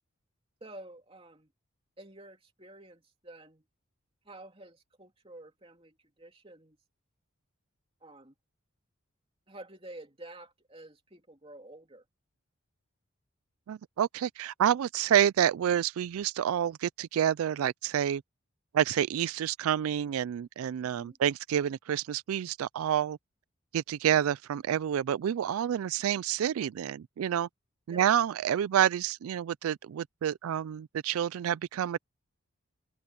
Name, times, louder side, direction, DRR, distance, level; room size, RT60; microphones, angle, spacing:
voice 1, 0.6-1.5 2.0-3.6 4.2-6.8 8.0-8.4 9.5-12.0 20.8-21.2 27.9-28.1, right 1 dB, 25° right, 2.8 m, -50 dB
voice 2, 13.7-18.2 18.7-23.2 23.7-27.5 27.9-32.0, right 10 dB, 85° right, 0.3 m, -28 dB
head